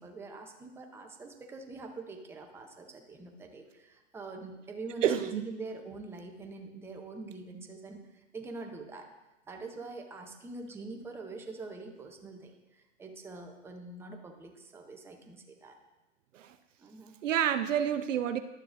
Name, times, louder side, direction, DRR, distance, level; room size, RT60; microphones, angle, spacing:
voice 1, 0.0-9.1 9.5-15.8 16.8-17.2, right 3 dB, 5° right, 3 dB, 0.7 m, -44 dB
voice 2, 5.0-5.4 16.3-16.5 17.2-18.4, right 9 dB, 80° right, 10 dB, 0.7 m, -28 dB
11.5 x 6.8 x 2.5 m, 1.0 s
hypercardioid pair, 125°, 37 cm